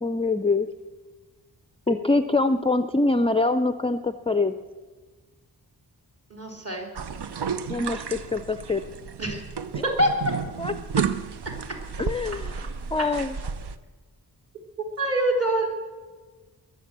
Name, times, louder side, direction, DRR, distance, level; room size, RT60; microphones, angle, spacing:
voice 1, 0.0-0.7 1.9-4.5 7.7-8.8 9.7-9.8 10.6-11.1 12.0-12.6 12.9-13.4, left 3 dB, 15° left, 10 dB, 0.4 m, -24 dB
voice 2, 6.3-6.9 9.2-9.4 10.0-10.1 14.8-15.7, right 1 dB, 35° right, 1 dB, 3.4 m, -25 dB
sound 1, 6.9-13.8, right 7 dB, 75° right, 0.8 m, -32 dB
21.5 x 7.6 x 7.4 m, 1.3 s
wide cardioid pair, 135°, 40 cm